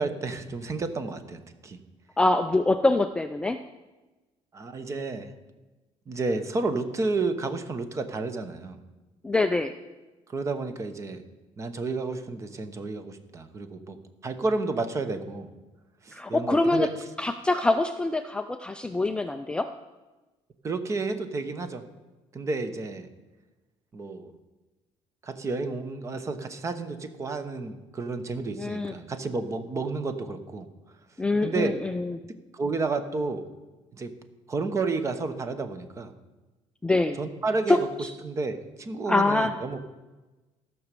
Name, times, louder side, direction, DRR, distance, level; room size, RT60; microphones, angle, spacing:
voice 1, 0.0-1.8 4.5-5.3 6.1-8.8 10.3-11.2 11.6-14.0 14.2-15.5 16.0-16.9 20.6-21.8 22.3-23.1 23.9-24.3 25.2-30.7 31.4-31.7 32.5-33.5 33.9-34.1 34.5-36.1 37.2-37.9 38.2-39.8, right 3 dB, 25° right, 9 dB, 0.9 m, -31 dB
voice 2, 2.2-3.6 9.2-9.7 16.1-16.9 17.2-19.7 28.6-29.0 31.2-32.2 36.8-37.2 37.7-38.1 39.1-39.5, left 2 dB, 10° left, 7 dB, 0.3 m, -24 dB
14.5 x 6.1 x 6.8 m, 1.1 s
cardioid pair, 145°, 11 cm